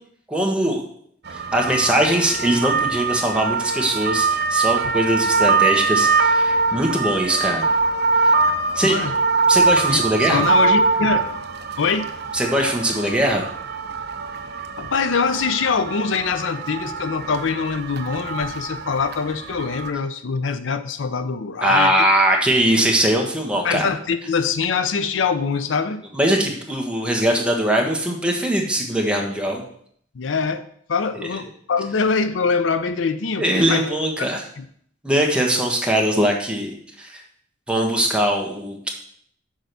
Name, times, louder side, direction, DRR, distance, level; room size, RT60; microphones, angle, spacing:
voice 1, 0.3-0.8 1.3-7.7 8.2-8.3 8.7-9.0 9.5-10.4 12.3-13.5 21.6-23.9 26.1-29.6 33.4-34.4 35.0-37.2 37.7-38.9, right 1 dB, 5° right, 0 dB, 1.3 m, -21 dB
sound 1, 1.3-19.9, right 4 dB, 60° right, 0.7 m, -23 dB
voice 2, 8.8-9.1 9.9-11.3 11.8-12.1 14.8-21.9 23.6-26.0 30.1-33.9 34.2-34.6, left 5 dB, 80° left, 11 dB, 0.5 m, -24 dB
6.4 x 4.7 x 6.7 m, 0.64 s
head